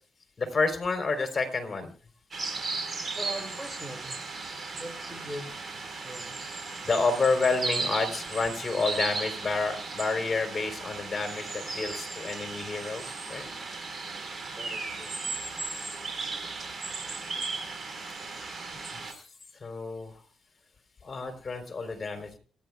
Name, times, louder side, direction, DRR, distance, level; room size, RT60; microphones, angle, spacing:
voice 1, 0.4-1.9 6.8-13.5 18.6-18.8 19.0-19.3 19.6-20.2 21.0-22.4, left 3 dB, 30° left, 6 dB, 3.7 m, -29 dB
sound 1, 2.3-19.1, right 3 dB, 40° right, 4.8 m, -36 dB
voice 2, 3.1-4.1 4.7-5.5 6.0-6.4 6.8-7.0 14.5-15.2, right 1 dB, 5° right, 4 dB, 2.3 m, -41 dB
29.0 x 10.5 x 2.4 m, 0.42 s
cardioid pair, 90°, 0 cm